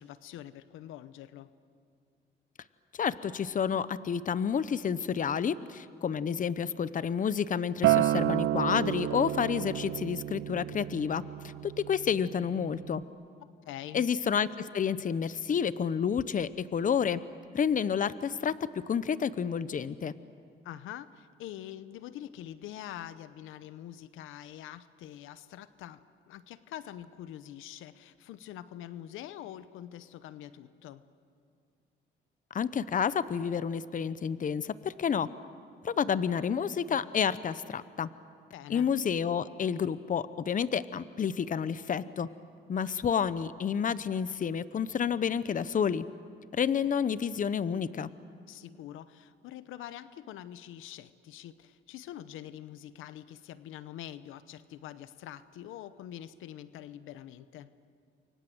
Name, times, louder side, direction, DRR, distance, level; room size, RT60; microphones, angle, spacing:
voice 1, 0.0-1.5 13.6-14.1 20.6-31.0 38.5-38.9 48.5-57.7, left 12 dB, 90° left, 14 dB, 0.9 m, -45 dB
voice 2, 2.9-13.0 13.9-17.2 17.5-18.6 18.9-20.1 32.5-35.3 35.8-38.1 38.7-42.3 42.7-46.0 46.5-48.1, left 7 dB, 40° left, 15 dB, 0.9 m, -30 dB
Acoustic guitar, 7.8-13.0, right 14 dB, 75° right, 0.6 m, -30 dB
29.0 x 24.0 x 7.9 m, 2.3 s
cardioid pair, 90°, 20 cm